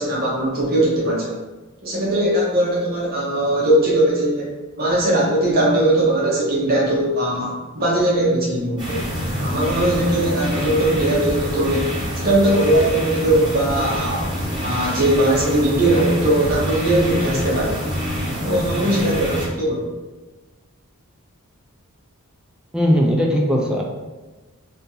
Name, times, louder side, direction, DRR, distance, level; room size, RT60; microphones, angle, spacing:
voice 1, 0.0-1.4 1.8-9.1 9.4-14.2 14.6-17.8 18.4-19.9, right 1 dB, 45° right, -5 dB, 0.7 m, -20 dB
sound 1, 8.8-19.5, equal, 20° right, 1.1 m, -26 dB
voice 2, 22.7-23.8, equal, 5° right, -1 dB, 0.3 m, -18 dB
2.7 x 2.6 x 3.8 m, 1.2 s
head